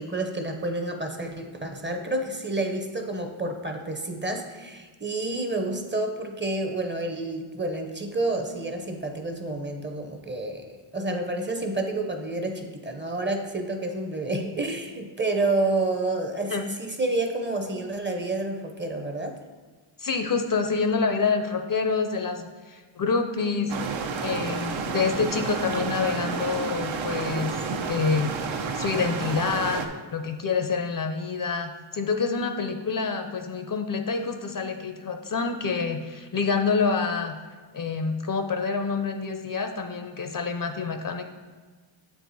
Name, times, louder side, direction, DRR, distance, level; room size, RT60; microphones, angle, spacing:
voice 1, 0.0-19.4, right 2 dB, 20° right, 5 dB, 0.7 m, -29 dB
voice 2, 20.0-28.3 28.7-29.8 30.1-37.3 37.7-41.2, left 5 dB, 45° left, 6 dB, 0.5 m, -27 dB
sound 1, 23.7-29.9, right 5 dB, 65° right, 0.7 m, -30 dB
7.4 x 4.7 x 4.0 m, 1.4 s
wide cardioid pair, 95°, 49 cm